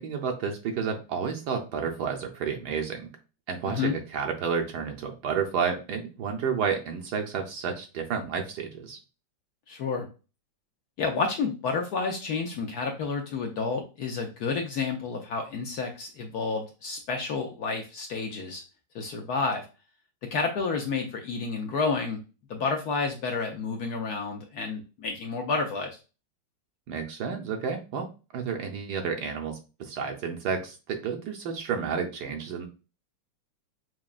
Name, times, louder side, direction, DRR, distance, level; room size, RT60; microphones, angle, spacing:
voice 1, 0.0-3.1 3.5-9.0 26.9-28.1 28.3-32.7, right 6 dB, 70° right, 3 dB, 1.1 m, -31 dB
voice 2, 9.7-10.1 11.0-18.6 18.9-19.7 20.3-22.2 22.5-26.0, left 4 dB, 70° left, 3 dB, 1.0 m, -30 dB
6.0 x 2.2 x 2.4 m, 0.31 s
omnidirectional pair, 2.1 m